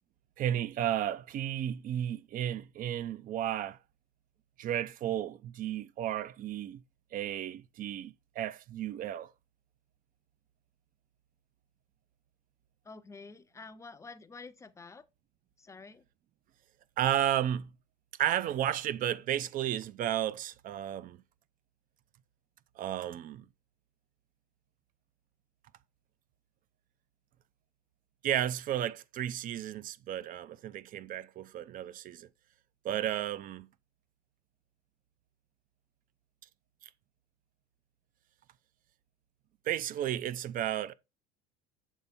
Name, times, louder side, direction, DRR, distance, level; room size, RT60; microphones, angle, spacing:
voice 1, 0.4-3.8 4.6-6.8 7.1-9.3 17.0-17.7 18.2-21.2 22.8-23.4 28.2-32.3 32.8-33.7 36.8-36.9 39.7-40.9, right 11 dB, 45° right, 0.5 m, -33 dB
voice 2, 12.8-15.1 15.6-16.0, left 4 dB, 15° left, 0.6 m, -49 dB
7.2 x 3.4 x 4.1 m
hypercardioid pair, 90°, 21 cm